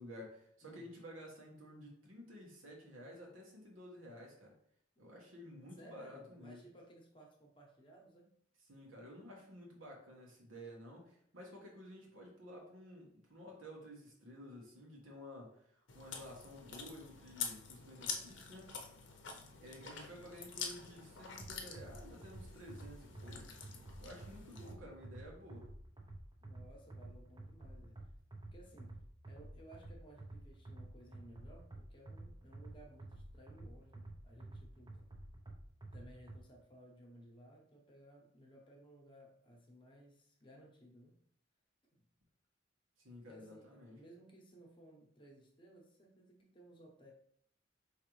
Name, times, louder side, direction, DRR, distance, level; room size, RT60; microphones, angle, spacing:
voice 1, 0.0-4.5 5.0-6.6 8.7-18.7 19.6-23.5 24.0-25.7 43.0-44.0, equal, 85° right, -2 dB, 1.5 m, -52 dB
voice 2, 0.6-0.9 5.0-5.1 5.8-8.3 19.5-20.1 26.4-28.2 28.5-35.1 35.9-41.2 43.3-47.1, right 1 dB, 25° left, 0 dB, 0.9 m, -59 dB
Chewing mastication, 15.9-24.7, left 6 dB, 65° left, 0.7 m, -47 dB
sound 1, 21.4-36.4, right 2 dB, 20° right, 0.6 m, -51 dB
5.1 x 3.2 x 3.1 m, 0.67 s
head